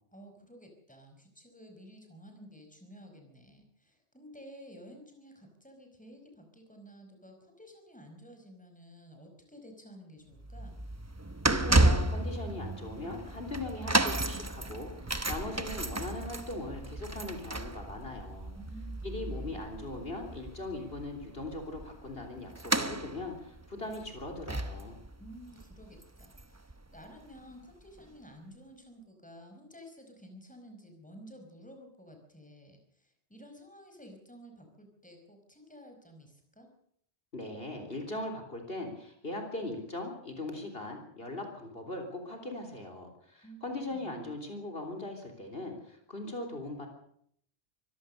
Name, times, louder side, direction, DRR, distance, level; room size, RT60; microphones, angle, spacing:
voice 1, 0.1-10.8 18.5-19.8 25.2-36.7 43.4-43.6 43.9-44.2, equal, 5° left, 4 dB, 5.0 m, -52 dB
sound 1, 10.4-26.7 27.0-27.2 28.0-28.1, right 2 dB, 15° right, 0.8 m, -32 dB
voice 2, 11.5-18.5 19.0-25.0 37.3-46.9, left 2 dB, 60° left, 4 dB, 3.8 m, -40 dB
24.5 x 16.5 x 6.6 m, 0.67 s
omnidirectional pair, 1.1 m